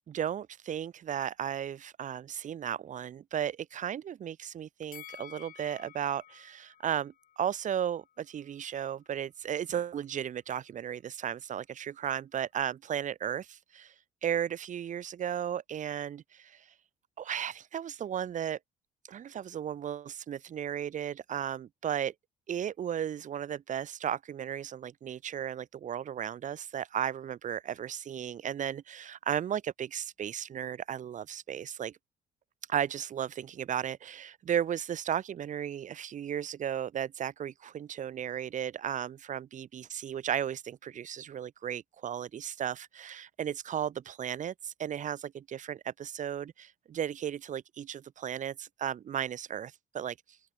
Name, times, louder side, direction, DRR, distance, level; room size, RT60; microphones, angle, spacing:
voice 1, 0.1-13.9 14.2-16.7 17.2-18.6 19.0-22.1 22.5-32.0 32.7-50.1, right 9 dB, 45° right, 1.7 m, -35 dB
Bell, 4.9-8.1 8.5-8.6, left 10 dB, 55° left, 6.2 m, -52 dB
open air
cardioid pair, 110°, 17 cm